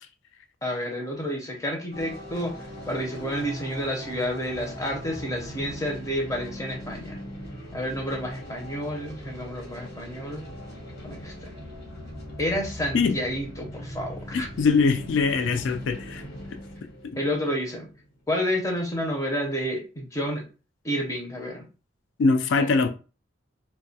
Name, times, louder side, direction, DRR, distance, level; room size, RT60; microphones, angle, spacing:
voice 1, 0.6-2.5 2.9-7.2 7.7-10.4 11.0-11.6 12.4-14.5 17.2-17.9 18.3-20.4 20.8-21.7, equal, 15° left, 0.5 m, -30 dB
sound 1, 1.9-18.2, equal, 55° left, 1.0 m, -40 dB
voice 2, 14.6-16.2 22.2-22.9, left 4 dB, 80° left, 0.3 m, -22 dB
2.2 x 2.1 x 2.7 m
head